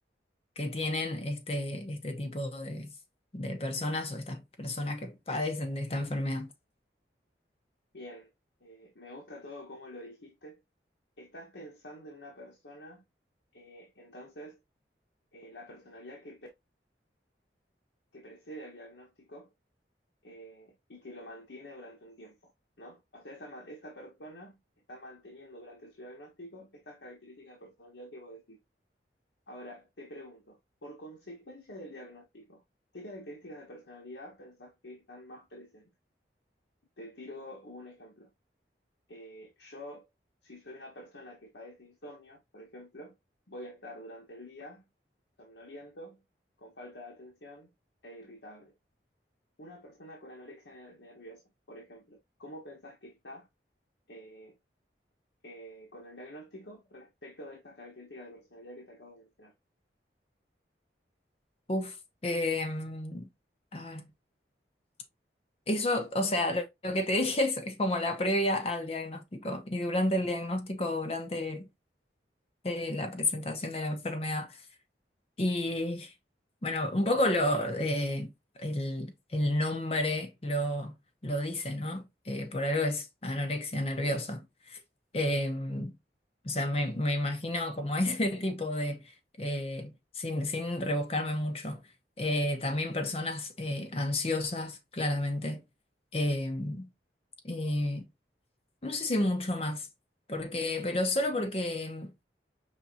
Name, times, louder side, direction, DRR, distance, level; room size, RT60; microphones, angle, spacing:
voice 1, 0.6-2.9 3.3-6.5 61.7-62.0 62.2-63.3 63.7-64.1 65.7-71.7 72.6-74.6 75.4-76.1 76.6-78.3 78.6-81.0 81.2-84.8 85.1-86.0 86.4-89.0 89.4-91.8 92.2-95.6 96.1-96.9 97.4-98.1 98.8-99.9 100.3-102.1, left 1 dB, 35° left, 0.7 m, -31 dB
voice 2, 7.9-8.3 8.6-10.6 11.2-13.0 13.5-14.6 15.3-16.5 18.1-19.5 20.2-22.5 22.8-24.6 24.9-28.6 29.5-32.6 32.9-35.9 37.0-38.3 39.1-40.1 40.4-43.2 43.5-44.9 45.4-46.2 46.6-47.7 48.0-48.7 49.6-53.5 54.1-54.5 55.4-59.5, equal, 85° left, 1.2 m, -48 dB
5.5 x 3.5 x 2.7 m
head